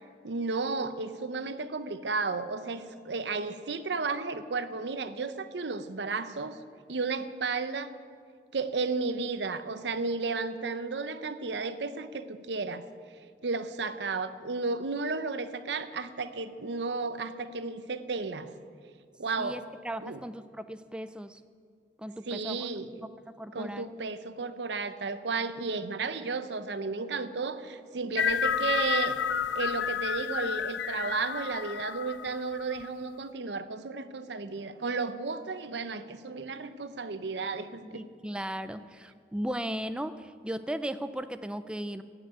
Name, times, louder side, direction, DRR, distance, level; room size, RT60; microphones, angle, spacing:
voice 1, 0.2-6.6 6.9-7.9 8.5-12.8 13.4-18.5 19.2-19.6 20.0-20.2 22.3-22.9 23.5-29.2 29.5-38.0, right 4 dB, 75° right, 12 dB, 0.7 m, -33 dB
voice 2, 19.4-21.4 22.0-22.7 23.3-23.9 37.8-42.0, right 1 dB, 5° right, 11 dB, 0.3 m, -36 dB
sound 1, 28.2-32.9, left 8 dB, 90° left, 0.5 m, -31 dB
17.0 x 5.9 x 9.2 m, 2.3 s
head